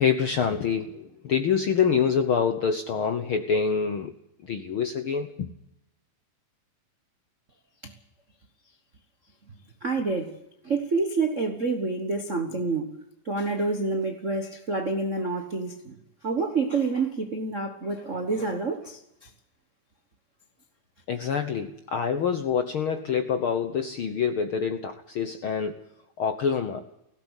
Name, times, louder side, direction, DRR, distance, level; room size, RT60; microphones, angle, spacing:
voice 1, 0.0-4.1 4.4-5.5 21.1-25.8 26.2-26.8, left 6 dB, 65° left, 1.3 m, -26 dB
voice 2, 9.8-10.3 10.6-12.9 13.2-15.9 16.2-19.3, right 3 dB, 50° right, 0.9 m, -28 dB
18.5 x 17.0 x 8.2 m
omnidirectional pair, 3.7 m